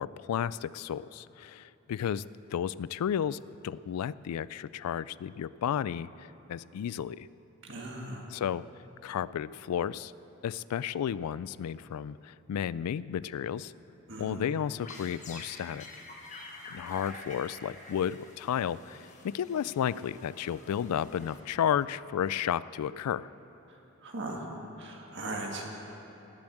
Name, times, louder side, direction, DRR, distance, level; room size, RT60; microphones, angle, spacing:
voice 1, 0.0-2.2 2.5-6.1 6.5-7.3 8.3-8.6 9.0-10.1 10.4-13.7 14.2-15.8 16.7-23.3, left 9 dB, 90° left, 19 dB, 0.3 m, -32 dB
voice 2, 7.6-8.3 14.1-14.4 23.7-24.5 24.8-25.6, right 2 dB, 50° right, 0 dB, 1.9 m, -39 dB
sound 1, 14.5-21.8, left 2 dB, 35° left, 1.4 m, -48 dB
19.5 x 7.1 x 7.7 m, 3.0 s
head